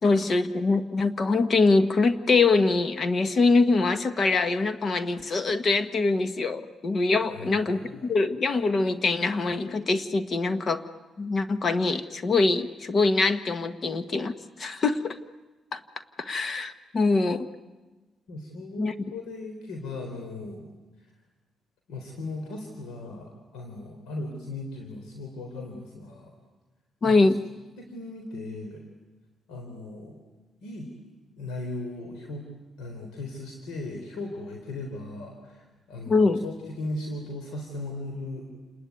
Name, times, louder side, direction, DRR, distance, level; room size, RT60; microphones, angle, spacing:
voice 1, 0.0-10.8 11.2-15.2 15.7-15.8 16.2-17.5 18.8-18.9 27.0-27.4 36.1-36.4, left 3 dB, 45° left, 11 dB, 1.3 m, -24 dB
voice 2, 7.2-8.2 18.3-20.7 21.0-21.1 21.9-26.3 27.0-27.4 27.8-28.8 29.5-30.2 30.6-30.9 31.4-32.5 32.8-38.5, left 2 dB, 90° left, 3 dB, 4.0 m, -37 dB
28.5 x 20.5 x 9.5 m, 1.2 s
cardioid pair, 90°, 0 cm